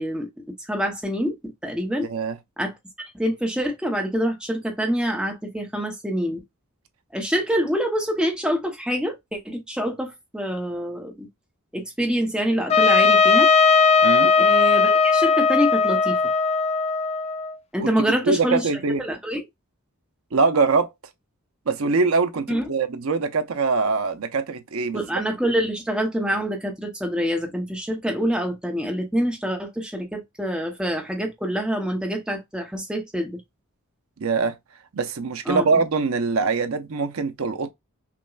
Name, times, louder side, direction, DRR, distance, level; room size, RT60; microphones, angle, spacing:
voice 1, 0.0-1.4 1.6-2.1 2.6-6.4 7.1-11.3 11.7-13.5 14.4-16.2 17.7-18.7 19.0-19.4 22.5-22.6 24.9-33.4 35.5-35.8, equal, 5° right, 0.8 m, -26 dB
voice 2, 2.0-2.4 14.0-14.3 17.8-17.9 18.2-19.0 20.3-20.9 21.7-25.0 34.2-34.6 34.9-37.7, right 4 dB, 75° right, 0.6 m, -23 dB
Trumpet, 12.7-17.5, left 5 dB, 30° left, 0.3 m, -18 dB
5.8 x 2.2 x 2.4 m
head